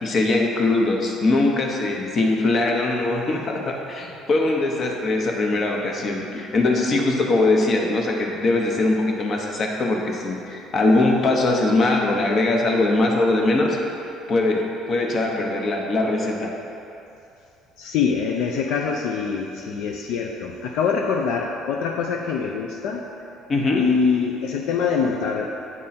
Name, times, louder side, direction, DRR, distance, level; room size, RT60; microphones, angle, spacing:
voice 1, 0.0-13.8 14.3-16.5 23.5-23.8, left 2 dB, 40° left, 0 dB, 0.9 m, -21 dB
voice 2, 17.8-23.0 23.8-25.5, left 5 dB, 75° left, 1 dB, 0.4 m, -24 dB
8.5 x 3.6 x 4.2 m, 2.7 s
cardioid pair, 120°, 0 cm